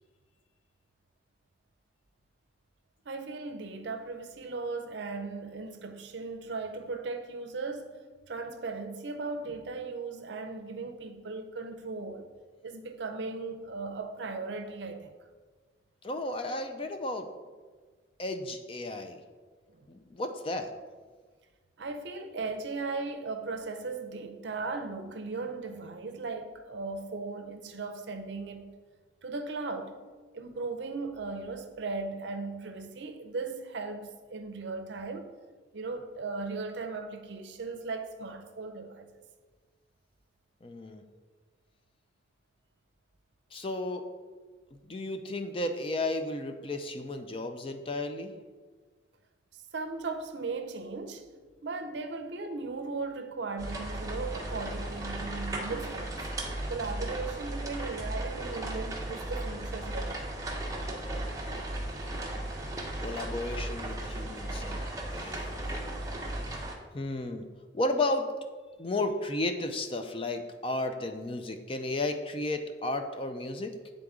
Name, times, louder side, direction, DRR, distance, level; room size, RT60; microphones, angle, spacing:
voice 1, 3.1-12.3 12.6-15.1 19.7-19.9 21.8-28.7 29.2-30.0 30.3-35.3 35.7-39.2 49.5-51.3 51.6-56.2 56.7-60.3, right 3 dB, 70° right, 0.6 m, -37 dB
voice 2, 16.0-17.3 18.2-19.2 19.9-20.7 40.6-41.0 43.5-44.0 44.9-48.3 63.0-64.8 65.1-65.8 66.9-67.5 67.7-68.3 68.8-73.7, left 2 dB, 30° left, 0.4 m, -33 dB
sound 1, 53.6-66.7, right 1 dB, 20° right, 0.8 m, -36 dB
9.1 x 3.9 x 3.6 m
head